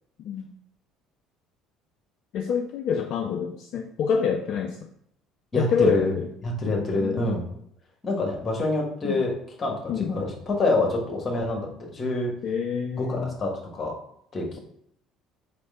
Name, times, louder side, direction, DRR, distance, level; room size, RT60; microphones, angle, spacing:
voice 1, 0.2-0.5 2.3-4.9 5.6-6.3 6.7-7.3 9.0-9.2 9.9-10.1 12.4-13.3, left 6 dB, 50° left, 4 dB, 0.3 m, -27 dB
voice 2, 5.5-6.1 6.4-7.5 8.0-9.3 9.6-11.7 11.9-12.3 13.0-13.9 14.3-14.6, left 2 dB, 30° left, -1 dB, 1.4 m, -26 dB
4.2 x 3.4 x 3.7 m, 0.72 s
figure-of-eight pair, 55°, 0 cm